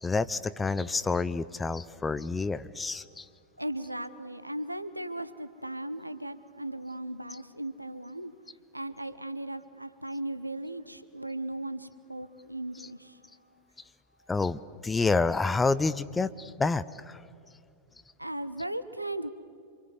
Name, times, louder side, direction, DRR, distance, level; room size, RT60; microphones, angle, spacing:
voice 1, 0.0-3.3 12.8-12.9 14.3-17.2, left 3 dB, 10° left, 15 dB, 0.6 m, -28 dB
voice 2, 3.6-8.3 8.7-13.2 18.2-19.3, right 1 dB, 85° right, 13 dB, 0.8 m, -37 dB
26.5 x 24.0 x 8.0 m, 2.5 s
figure-of-eight pair, 90°, 0 cm